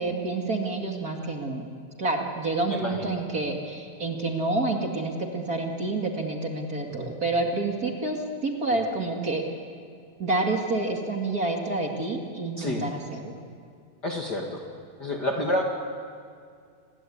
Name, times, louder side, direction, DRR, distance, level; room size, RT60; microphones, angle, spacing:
voice 1, 0.0-1.7 2.0-9.4 10.2-13.4, right 2 dB, 30° right, 1 dB, 2.3 m, -28 dB
voice 2, 2.7-3.2 6.9-7.1 8.7-8.8 12.6-12.9 14.0-14.6 15.0-15.6, left 1 dB, 35° left, 1 dB, 2.4 m, -29 dB
29.0 x 21.5 x 8.6 m, 2.3 s
omnidirectional pair, 3.4 m